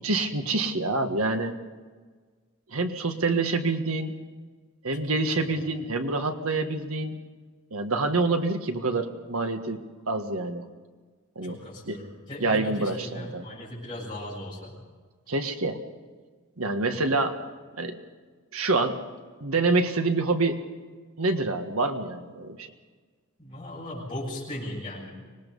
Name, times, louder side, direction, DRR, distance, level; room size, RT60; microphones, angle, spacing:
voice 1, 0.0-1.5 2.7-4.1 4.8-7.2 7.7-10.6 11.3-11.6 11.9-12.0 12.4-13.4 15.3-15.8 16.6-17.4 17.8-18.0 18.5-19.0 19.4-20.6 21.2-22.7, right 3 dB, 85° right, 6 dB, 1.6 m, -26 dB
voice 2, 11.4-14.8 16.8-17.0 23.4-25.1, left 1 dB, 25° left, -7 dB, 7.4 m, -37 dB
25.0 x 19.5 x 5.4 m, 1.5 s
head